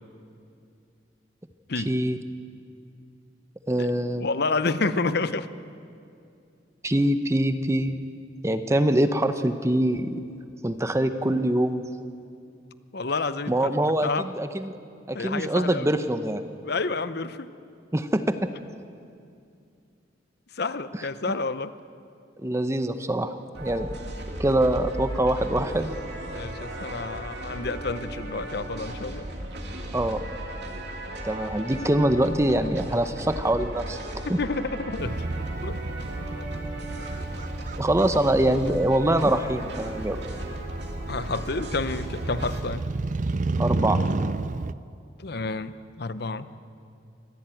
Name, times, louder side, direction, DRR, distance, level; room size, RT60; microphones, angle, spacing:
voice 1, 1.8-2.2 3.7-4.3 6.8-8.0 8.4-10.2 10.6-11.8 13.5-14.8 15.1-16.4 17.9-18.5 22.4-23.9 24.4-25.9 29.9-30.2 31.2-34.0 34.3-34.4 37.8-40.2 43.6-44.0, right 1 dB, 15° right, 9 dB, 0.8 m, -24 dB
voice 2, 4.2-5.5 12.9-13.5 14.0-14.2 15.1-15.9 16.6-17.5 20.5-21.7 26.3-29.3 34.3-35.2 35.6-35.8 41.1-42.8 45.2-46.5, left 3 dB, 60° left, 13 dB, 0.8 m, -29 dB
sound 1, 23.5-42.6, right 1 dB, 60° right, 2.6 m, -36 dB
Motorcycle, 35.0-44.7, right 3 dB, 40° right, 0.5 m, -32 dB
24.0 x 15.0 x 9.1 m, 2.5 s
head